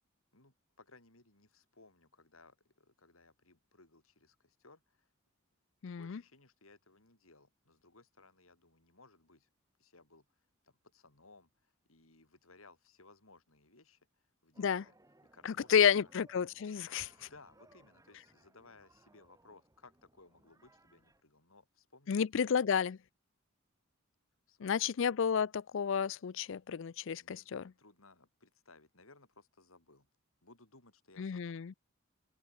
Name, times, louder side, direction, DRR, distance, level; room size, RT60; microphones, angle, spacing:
voice 1, 0.3-5.1 6.0-9.5 9.8-10.3 10.6-14.1 14.4-14.9 15.3-15.8 16.0-16.1 17.2-22.1 22.4-22.5 24.5-24.9 27.2-30.1 30.4-31.6, left 3 dB, 90° left, 5.9 m, -61 dB
voice 2, 5.8-6.2 14.6-14.8 15.4-17.3 22.1-23.0 24.6-27.6 31.2-31.7, left 7 dB, 65° left, 0.4 m, -31 dB
sound 1, 14.5-21.2, right 2 dB, 15° right, 2.5 m, -66 dB
open air
head